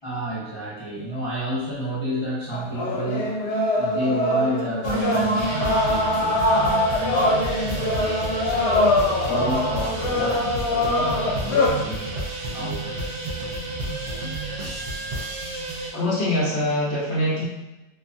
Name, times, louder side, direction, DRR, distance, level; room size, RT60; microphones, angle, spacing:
voice 1, 0.0-3.3 3.7-8.6 9.3-12.3 12.5-13.0, equal, 35° left, -12 dB, 0.4 m, -31 dB
sound 1, 2.5-11.7, left 1 dB, 80° left, 1.1 m, -23 dB
sound 2, 4.8-15.9, right 2 dB, 70° right, 1.0 m, -30 dB
voice 2, 15.9-17.4, left 1 dB, 50° left, -6 dB, 0.9 m, -23 dB
2.8 x 2.3 x 2.5 m, 1.0 s
omnidirectional pair, 1.8 m